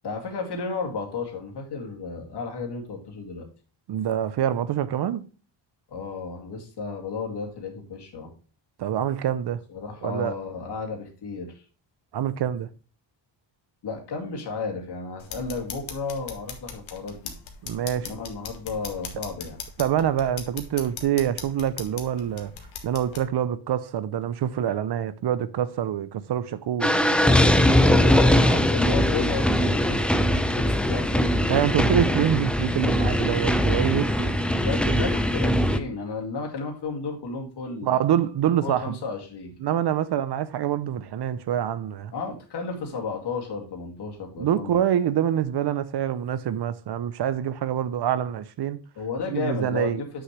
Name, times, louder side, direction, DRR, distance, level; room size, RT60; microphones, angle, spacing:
voice 1, 0.0-3.5 5.9-8.3 9.7-11.6 13.8-17.2 18.0-19.6 27.3-30.1 30.5-31.3 34.6-38.0 38.6-39.5 42.1-44.8 49.0-50.1, left 4 dB, 60° left, 2.4 m, -33 dB
voice 2, 3.9-5.3 8.8-9.6 10.0-10.3 12.1-12.7 17.6-18.1 19.8-22.5 22.8-27.0 31.5-34.4 34.9-35.1 37.8-39.0 39.6-42.1 44.4-48.8 49.3-50.0, right 10 dB, 60° right, 0.7 m, -26 dB
sound 1, 15.2-23.2, left 6 dB, 80° left, 1.7 m, -39 dB
sound 2, 26.8-35.8, left 1 dB, 5° left, 0.4 m, -21 dB
7.9 x 6.4 x 3.2 m
wide cardioid pair, 165°, 46 cm